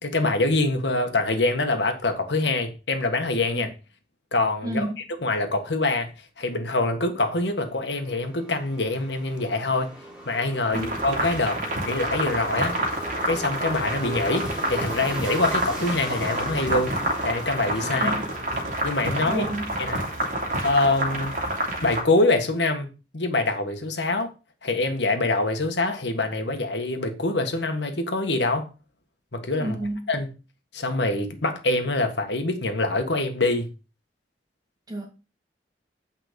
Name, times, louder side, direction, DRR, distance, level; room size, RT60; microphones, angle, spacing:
voice 1, 0.0-3.7 4.3-4.8 5.2-6.1 6.4-9.9 10.2-11.6 11.8-12.8 13.2-17.0 17.2-18.1 18.8-19.5 19.8-20.0 20.6-21.4 21.8-24.3 24.6-28.7 29.3-29.8 30.1-30.3 30.7-33.7, left 2 dB, 85° left, 1.7 m, -25 dB
voice 2, 4.6-4.9 10.7-10.9 17.9-18.3 19.2-19.7 29.6-30.1 34.9-35.1, right 1 dB, 20° right, 2.7 m, -30 dB
sound 1, 7.5-21.8, equal, 5° right, 3.6 m, -40 dB
sound 2, 10.7-22.0, right 1 dB, 45° right, 2.8 m, -28 dB
9.0 x 5.5 x 5.2 m
head